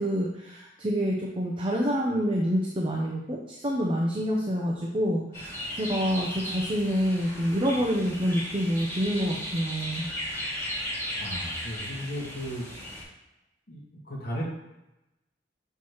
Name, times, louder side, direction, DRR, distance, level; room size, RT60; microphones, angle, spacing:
voice 1, 0.0-10.1, equal, 30° right, -2 dB, 0.8 m, -27 dB
sound 1, 5.3-13.0, equal, 20° left, 2.4 m, -36 dB
voice 2, 11.2-12.7 13.7-13.8 14.1-14.4, equal, 55° left, -4 dB, 1.8 m, -35 dB
6.7 x 5.7 x 3.1 m, 0.93 s
head